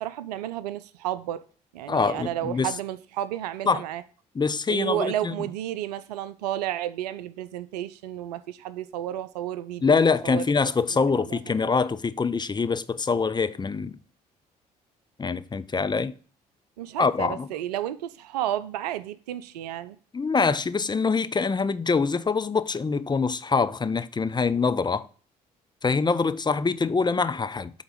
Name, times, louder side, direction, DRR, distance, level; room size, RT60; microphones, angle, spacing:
voice 1, 0.0-1.4 1.7-4.0 4.7-10.4 11.1-11.6 16.8-20.0, right 12 dB, 80° right, 0.5 m, -32 dB
voice 2, 1.9-2.7 3.7-3.8 4.4-5.3 9.8-13.9 15.2-16.1 17.0-17.5 20.1-25.1 25.8-27.7, left 4 dB, 20° left, 0.6 m, -24 dB
8.0 x 3.9 x 5.0 m
figure-of-eight pair, 50°, 20 cm